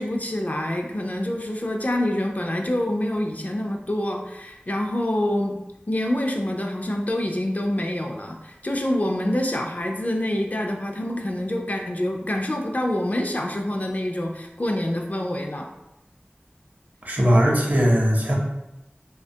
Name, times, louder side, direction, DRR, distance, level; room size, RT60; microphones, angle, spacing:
voice 1, 0.0-5.6 5.9-15.7, left 1 dB, 40° left, 1 dB, 0.3 m, -26 dB
voice 2, 17.0-18.3, equal, 45° right, -2 dB, 0.6 m, -19 dB
2.7 x 2.1 x 2.7 m, 0.92 s
wide cardioid pair, 40°, 4 cm